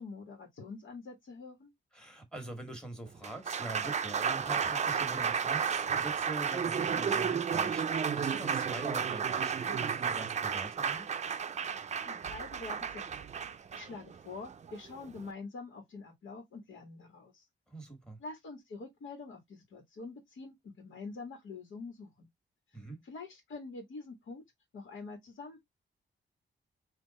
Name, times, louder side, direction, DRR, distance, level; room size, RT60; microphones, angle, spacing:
voice 1, 0.0-1.7 11.9-13.0 13.7-17.4 18.2-22.3 23.0-24.4 24.7-25.6, left 4 dB, 90° left, 1.7 m, -45 dB
voice 2, 1.9-11.1 17.7-18.2 22.7-23.0, right 2 dB, 5° left, 1.5 m, -43 dB
Applause, 3.1-15.3, right 7 dB, 35° right, 0.4 m, -33 dB
3.9 x 2.9 x 4.1 m
wide cardioid pair, 145°, 20 cm